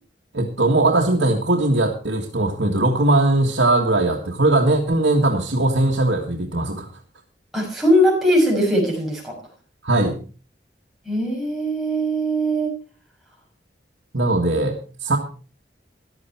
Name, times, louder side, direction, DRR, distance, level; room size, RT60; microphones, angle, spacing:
voice 1, 0.3-6.9 9.8-10.2 14.1-15.2, right 2 dB, 85° right, 0 dB, 1.8 m, -19 dB
voice 2, 7.5-9.3 11.0-12.7, equal, ahead, -3 dB, 6.3 m, -20 dB
15.0 x 11.5 x 4.6 m, 0.37 s
head